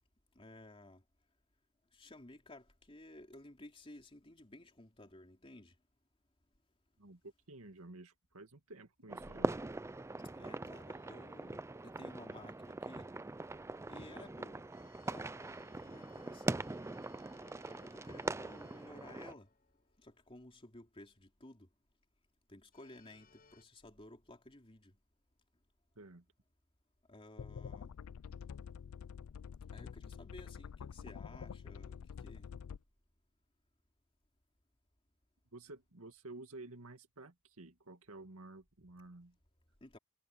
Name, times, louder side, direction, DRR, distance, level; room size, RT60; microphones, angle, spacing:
voice 1, 0.3-1.0 1.9-5.7 10.4-13.1 13.9-14.6 15.0-15.3 15.8-16.8 17.6-19.5 20.0-21.7 22.5-25.0 27.1-27.9 29.7-32.5 39.8-40.0, left 1 dB, 25° left, 3.2 m, -55 dB
voice 2, 7.0-9.6 26.0-26.3 35.5-39.4, right 2 dB, 75° right, 2.1 m, -52 dB
sound 1, 9.1-19.3, right 2 dB, 10° right, 0.4 m, -42 dB
sound 2, 10.9-12.0 14.7-20.4 22.7-23.6, left 5 dB, 40° left, 4.9 m, -67 dB
sound 3, 27.4-32.8, left 7 dB, 70° left, 0.4 m, -47 dB
head